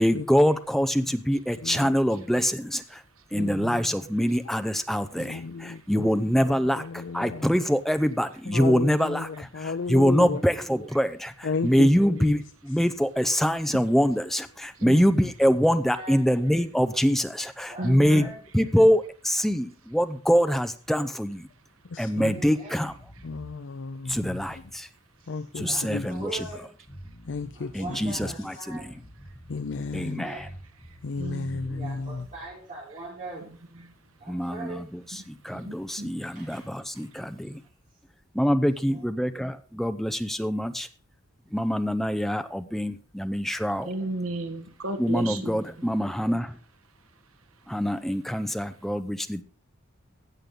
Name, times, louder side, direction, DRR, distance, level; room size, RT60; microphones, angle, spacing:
voice 1, 0.0-3.0 3.3-18.3 18.5-21.5 22.0-22.9 24.1-24.9 25.6-26.5 27.7-29.0 29.9-30.5 34.3-37.6 38.3-40.9 41.5-43.9 45.0-46.6 47.7-49.4, equal, ahead, 0.6 m, -25 dB
voice 2, 1.6-2.0 3.4-3.6 5.2-6.1 6.4-7.5 8.5-10.4 11.4-11.9 12.2-12.4 21.9-22.3 23.2-24.4 25.3-26.1 27.3-28.3 29.5-30.3 31.0-32.3, left 4 dB, 60° left, 0.5 m, -33 dB
voice 3, 3.3-3.8 5.7-6.1 9.6-10.4 11.6-12.1 13.7-13.9 14.8-15.3 17.8-18.4 18.8-18.9 22.2-22.5 25.6-26.0 27.9-28.0 30.8-31.8 32.9-33.0 33.5-33.9 35.2-36.1 43.8-45.5 45.8-45.9, right 2 dB, 80° right, 1.4 m, -37 dB
voice 4, 17.7-18.4 22.3-22.8 25.2-26.6 27.5-28.9 30.0-30.5 31.2-33.5 34.2-34.8 36.3-36.6 36.9-37.0 38.8-39.1, right 2 dB, 35° right, 4.1 m, -41 dB
sound 1, 22.8-23.5 24.0-24.8 25.5-26.5 26.9-28.3 28.7-29.7 30.4-32.4, equal, 20° left, 3.6 m, -47 dB
16.0 x 6.6 x 3.8 m
head